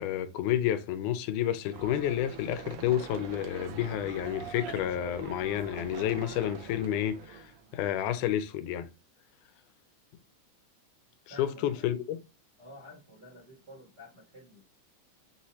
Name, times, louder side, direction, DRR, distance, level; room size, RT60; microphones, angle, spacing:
voice 1, 0.0-8.9 11.3-12.2, left 11 dB, 85° left, 2.1 m, -30 dB
sound 1, 1.7-7.8, right 7 dB, 80° right, 1.3 m, -43 dB
voice 2, 11.3-12.0 12.6-14.6, left 1 dB, 25° right, 0.9 m, -51 dB
5.2 x 2.8 x 3.0 m
omnidirectional pair, 3.5 m